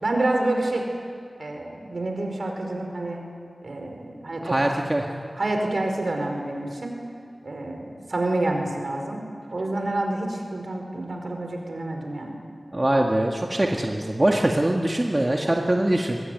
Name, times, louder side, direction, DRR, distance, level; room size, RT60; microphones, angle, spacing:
voice 1, 0.0-0.8 1.4-3.2 3.6-4.6 5.4-6.9 7.4-9.2 9.5-12.4, right 2 dB, 70° right, 2 dB, 4.8 m, -28 dB
voice 2, 4.4-5.1 12.7-16.2, right 1 dB, 30° right, 0 dB, 1.9 m, -23 dB
23.0 x 21.0 x 9.4 m, 2.3 s
wide cardioid pair, 55°, 0 cm